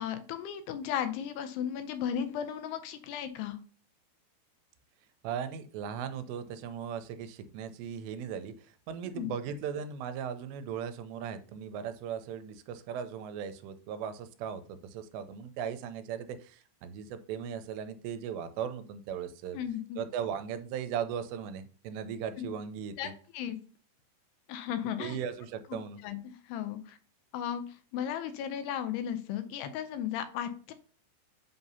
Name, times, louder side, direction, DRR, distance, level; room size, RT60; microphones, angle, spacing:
voice 1, 0.0-3.6 9.2-9.3 19.5-20.0 22.4-22.5 23.0-23.6 24.5-25.2 25.7-27.0 27.3-30.7, left 9 dB, 80° left, 9 dB, 2.5 m, -35 dB
voice 2, 5.2-19.6 20.0-23.1 25.0-26.0, right 8 dB, 85° right, 10 dB, 2.8 m, -38 dB
7.8 x 2.8 x 5.4 m, 0.40 s
omnidirectional pair, 4.9 m